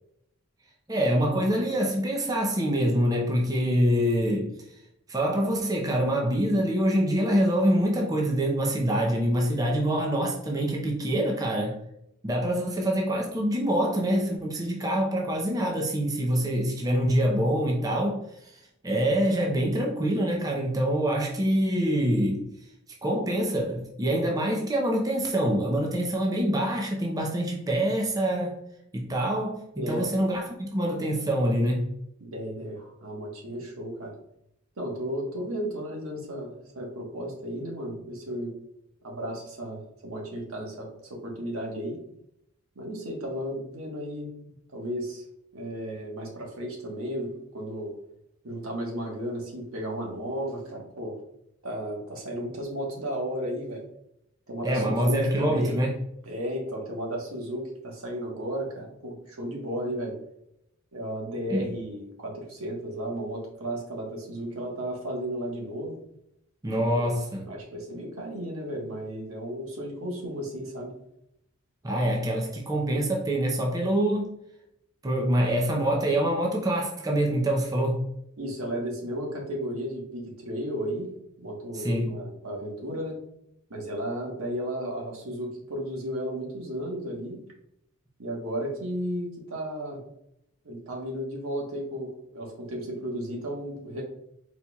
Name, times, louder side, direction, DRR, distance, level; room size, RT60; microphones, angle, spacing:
voice 1, 0.9-4.5 5.1-11.7 12.2-18.2 18.5-22.4 23.0-28.6 28.9-31.9 54.6-55.9 61.5-61.7 66.6-67.4 71.8-74.3 75.0-78.1 81.7-82.1, right 1 dB, 15° right, -1 dB, 0.6 m, -25 dB
voice 2, 29.8-30.1 32.2-34.1 34.8-38.5 39.0-42.0 42.7-45.2 45.5-47.9 48.4-51.1 51.6-53.8 54.5-55.8 56.3-60.2 60.9-65.9 66.9-67.1 67.5-70.9 78.4-83.2 83.7-87.4 88.2-90.0 90.6-94.0, equal, 80° right, 0 dB, 1.3 m, -34 dB
4.2 x 4.1 x 2.3 m, 0.78 s
head